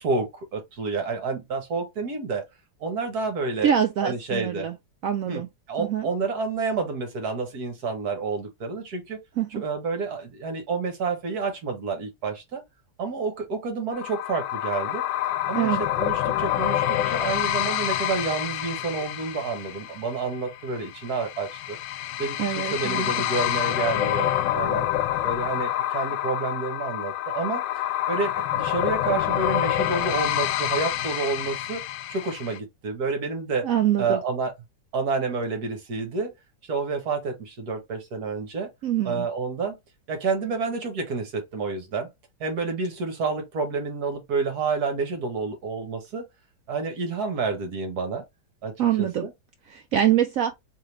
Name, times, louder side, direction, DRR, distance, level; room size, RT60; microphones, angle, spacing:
voice 1, 0.0-2.5 2.8-3.7 4.0-4.7 5.3-5.4 5.7-9.2 9.5-12.6 13.0-15.1 15.5-21.8 22.2-24.9 25.2-31.8 32.1-33.7 34.0-34.5 34.9-36.3 36.6-38.7 39.0-39.8 40.1-42.1 42.4-46.2 46.7-48.2 48.6-49.3, right 4 dB, 60° right, 1.6 m, -29 dB
voice 2, 3.6-4.7 5.0-5.5 5.8-6.1 9.4-9.6 15.5-15.8 22.4-23.2 33.6-34.2 38.8-39.3 48.8-49.3 49.7-50.5, right 10 dB, 75° right, 0.7 m, -24 dB
sound 1, 13.9-32.6, left 12 dB, 85° left, 1.3 m, -27 dB
3.7 x 3.3 x 3.1 m
omnidirectional pair, 2.0 m